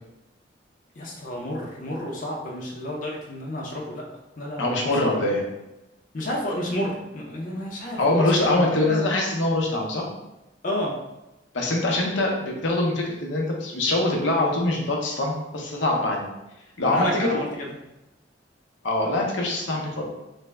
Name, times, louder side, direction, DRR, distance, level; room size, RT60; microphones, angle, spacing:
voice 1, 1.0-4.0 4.4-5.1 6.1-9.0 10.6-10.9 16.9-17.5, left 1 dB, 45° left, -3 dB, 0.6 m, -30 dB
voice 2, 4.6-5.4 8.0-10.1 11.5-16.3 16.8-17.3 18.8-20.1, left 2 dB, 85° left, -1 dB, 0.7 m, -23 dB
3.3 x 2.1 x 3.3 m, 0.93 s
head